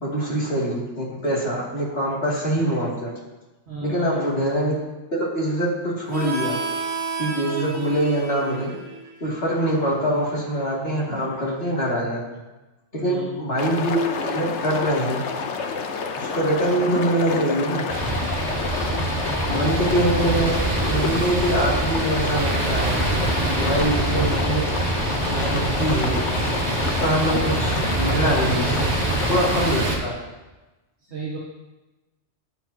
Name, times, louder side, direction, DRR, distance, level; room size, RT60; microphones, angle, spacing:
voice 1, 0.0-3.1 3.8-4.7 5.1-6.6 7.2-8.7 9.2-12.2 12.9-15.2 16.2-17.8 19.5-23.0 23.6-24.6 25.2-26.4 26.8-28.9 29.2-30.1, right 1 dB, 55° left, -5 dB, 2.8 m, -24 dB
voice 2, 3.7-4.2 12.9-13.4 19.1-20.1 23.7-24.0 31.0-31.4, right 3 dB, 60° right, -6 dB, 1.9 m, -34 dB
Harmonica, 6.1-11.4, right 3 dB, 85° right, 1.8 m, -33 dB
sound 1, 13.6-29.8, left 5 dB, 70° left, 1.1 m, -29 dB
sound 2, 17.9-30.0, right 2 dB, 35° right, 1.7 m, -25 dB
17.0 x 7.7 x 2.9 m, 1.1 s
omnidirectional pair, 1.2 m